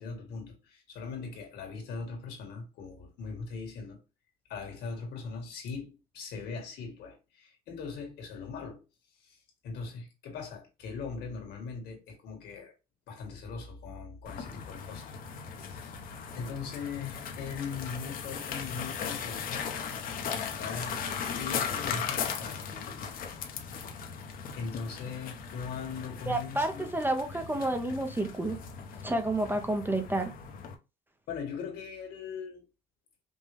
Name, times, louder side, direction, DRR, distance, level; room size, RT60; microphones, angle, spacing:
voice 1, 0.0-4.0 4.5-8.8 9.1-12.7 13.1-15.1 15.6-16.0 16.4-19.7 20.3-20.9 21.3-23.1 24.6-26.9 31.3-32.6, left 5 dB, 75° left, 1.8 m, -40 dB
sound 1, 14.3-30.8, left 7 dB, 60° left, 0.8 m, -38 dB
voice 2, 26.3-28.6 29.0-30.3, right 2 dB, 10° right, 0.6 m, -30 dB
5.3 x 2.2 x 3.3 m
cardioid pair, 110°, 17 cm